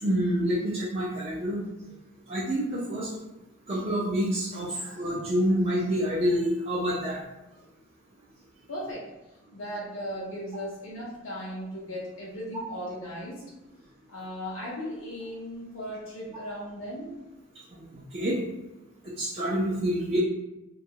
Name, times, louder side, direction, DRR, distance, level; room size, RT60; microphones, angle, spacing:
voice 1, 0.0-1.7 2.3-3.1 3.7-7.2 17.7-18.4 19.0-20.2, equal, 30° right, -7 dB, 0.4 m, -27 dB
voice 2, 8.7-9.1 9.5-13.4 14.1-17.1, equal, 75° left, -7 dB, 0.6 m, -37 dB
2.8 x 2.3 x 2.8 m, 1.0 s
head